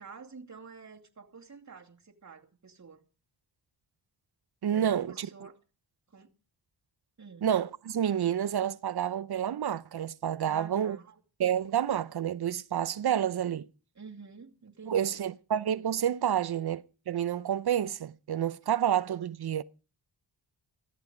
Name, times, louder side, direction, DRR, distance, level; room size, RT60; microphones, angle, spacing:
voice 1, 0.0-3.0 4.7-5.6 6.1-6.3 7.2-7.5 10.5-11.2 13.9-15.2, right 5 dB, 40° right, 2.5 m, -48 dB
voice 2, 4.6-5.3 7.4-11.0 11.4-13.7 14.9-19.6, right 9 dB, 55° right, 0.7 m, -29 dB
16.5 x 14.0 x 5.0 m
cardioid pair, 85°, 45 cm